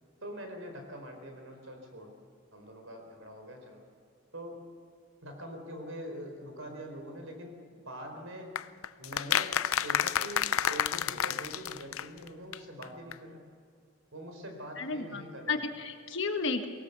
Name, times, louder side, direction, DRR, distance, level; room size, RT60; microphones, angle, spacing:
voice 1, 0.2-2.1 2.5-3.8 4.3-4.6 5.2-8.6 9.0-13.4 14.1-15.7, equal, 70° right, 4 dB, 4.6 m, -44 dB
sound 1, 8.6-12.3 12.5-12.6 12.8-12.9 13.1-13.2, left 9 dB, 75° left, 0.6 m, -30 dB
voice 2, 14.8-16.7, left 4 dB, 55° left, 6 dB, 1.4 m, -33 dB
23.5 x 18.5 x 6.9 m, 2.2 s
head